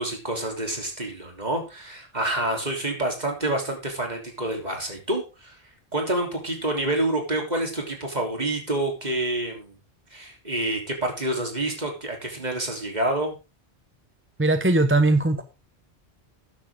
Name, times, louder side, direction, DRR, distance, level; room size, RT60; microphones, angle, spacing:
voice 1, 0.0-5.6 5.9-9.8 10.1-13.3, right 1 dB, 40° right, 2 dB, 3.7 m, -28 dB
voice 2, 14.4-15.4, right 2 dB, 15° right, 9 dB, 0.8 m, -19 dB
13.5 x 9.9 x 3.7 m, 0.29 s
omnidirectional pair, 1.1 m